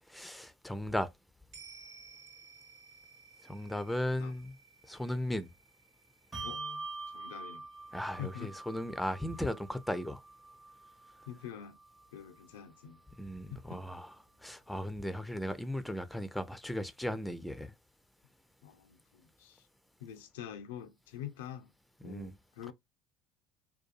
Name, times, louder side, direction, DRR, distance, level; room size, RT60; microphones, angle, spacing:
voice 1, 0.1-1.1 3.4-4.6 4.9-5.5 7.9-10.2 13.2-14.2 14.4-17.7 22.0-22.3, left 1 dB, 5° left, 0.4 m, -36 dB
sound 1, 1.5-10.1 10.4-10.5, right 5 dB, 70° right, 1.1 m, -58 dB
Bell, 6.3-13.2, right 3 dB, 35° right, 1.0 m, -46 dB
voice 2, 6.4-7.7 8.2-8.5 11.3-11.8 12.1-13.0 13.5-13.8 18.6-19.7 20.0-21.7 22.0-22.7, left 9 dB, 80° left, 0.4 m, -46 dB
2.6 x 2.2 x 2.4 m
hypercardioid pair, 70°, 0 cm